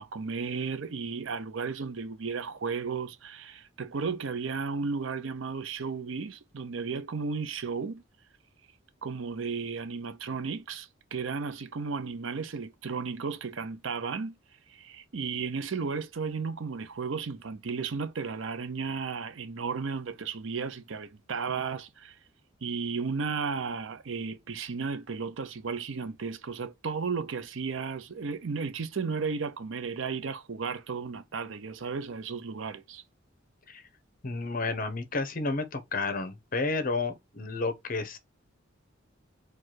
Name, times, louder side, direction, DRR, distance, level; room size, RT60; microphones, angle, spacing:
voice 1, 0.0-8.0 9.0-14.4 14.7-22.1 22.6-33.0, right 5 dB, 70° right, 0.6 m, -34 dB
voice 2, 34.2-38.2, left 3 dB, 45° left, 0.8 m, -31 dB
4.5 x 2.4 x 4.5 m
head